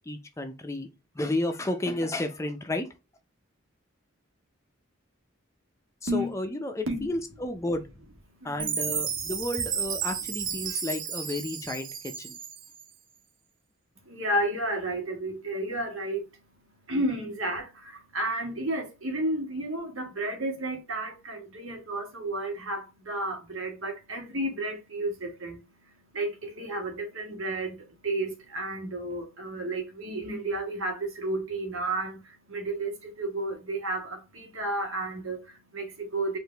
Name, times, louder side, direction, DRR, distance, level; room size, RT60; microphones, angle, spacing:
voice 1, 0.1-0.9 1.2-2.9 6.0-7.9 8.4-11.9 12.2-12.4, left 1 dB, 15° left, 0.5 m, -32 dB
voice 2, 8.3-8.8 14.0-36.4, right 1 dB, 85° right, 1.5 m, -32 dB
Chime, 8.6-12.8, right 7 dB, 40° right, 0.7 m, -32 dB
4.8 x 2.6 x 3.3 m
head